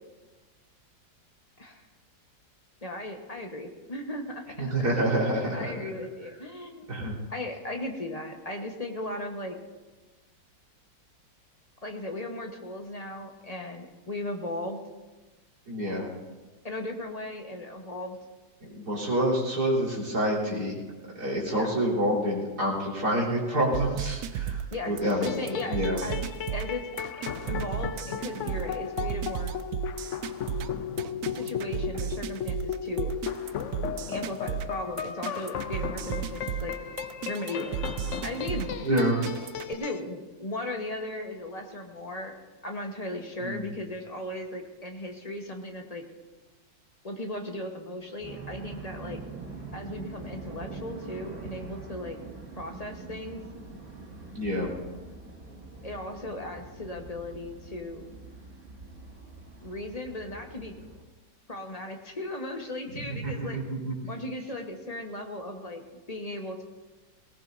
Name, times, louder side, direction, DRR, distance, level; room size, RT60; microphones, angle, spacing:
voice 1, 2.8-4.7 5.5-9.6 11.8-14.8 16.6-18.2 21.5-21.7 24.7-24.9 25.2-26.2 26.5-26.8 27.5-29.5 31.3-33.1 34.1-36.8 37.3-37.8 38.2-38.7 39.7-42.4 42.6-46.0 47.0-49.2 49.7-52.2 52.6-53.4 55.8-58.1 59.6-60.7 61.5-63.6 64.1-65.8 66.1-66.6, left 1 dB, 25° left, 2 dB, 1.1 m, -36 dB
voice 2, 4.6-5.7 6.9-7.2 15.7-16.1 18.6-20.8 21.1-26.0 38.8-39.2 43.4-43.8 54.3-54.7 62.9-64.1, right 1 dB, 55° right, -4 dB, 4.7 m, -28 dB
sound 1, 23.7-39.7, right 10 dB, 70° right, 0.9 m, -34 dB
sound 2, 25.0-40.0, left 8 dB, 75° left, 0.7 m, -35 dB
sound 3, 48.2-61.0, right 3 dB, 30° right, 2.4 m, -44 dB
19.5 x 18.0 x 2.7 m, 1.2 s
omnidirectional pair, 2.0 m